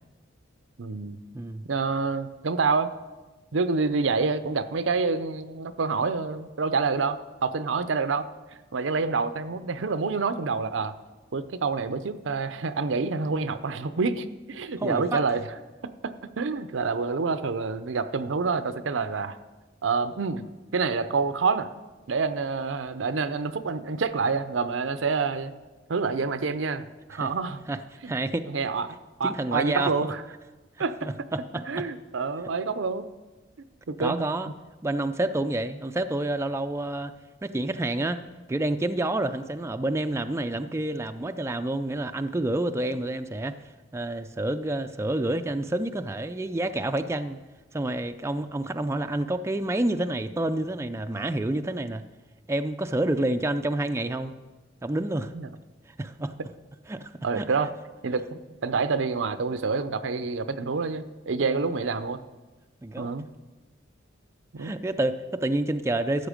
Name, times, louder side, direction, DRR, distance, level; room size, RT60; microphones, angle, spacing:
voice 1, 0.8-1.2 1.7-2.9 3.5-8.3 8.7-10.9 11.3-15.5 15.8-19.4 19.8-20.5 20.7-21.7 22.1-25.5 25.9-27.6 28.0-28.1 28.4-28.9 29.2-30.2 30.8-31.3 31.7-33.1 33.9-34.2 55.3-55.5 57.2-57.7 58.0-62.2 63.0-63.3 64.5-64.7, right 4 dB, 80° right, 12 dB, 0.6 m, -27 dB
voice 2, 1.3-1.7 14.8-15.2 27.1-27.3 27.7-27.8 28.0-28.5 29.2-30.1 31.0-31.6 34.0-34.5 34.8-37.1 37.4-38.2 38.5-47.4 47.7-52.0 52.5-54.3 54.8-55.3 56.0-56.3 56.9-57.5 61.4-61.6 62.8-63.1 64.6-66.3, right 1 dB, 15° right, 8 dB, 0.3 m, -28 dB
13.0 x 8.0 x 5.1 m, 1.2 s
head